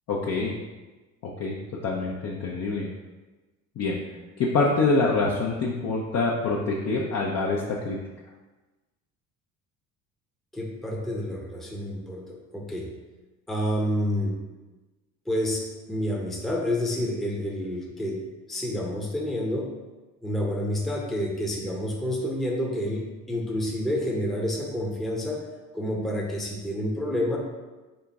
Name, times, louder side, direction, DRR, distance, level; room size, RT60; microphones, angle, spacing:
voice 1, 0.1-0.5 1.2-1.6 1.8-2.9 3.8-4.0 4.4-8.0, left 3 dB, 40° left, -3 dB, 0.7 m, -25 dB
voice 2, 10.5-12.9 13.5-14.4 15.3-18.2 18.5-19.7 20.2-25.5 25.7-27.4, left 1 dB, ahead, -2 dB, 0.8 m, -29 dB
4.0 x 3.7 x 3.5 m, 1.2 s
hypercardioid pair, 60°, 42 cm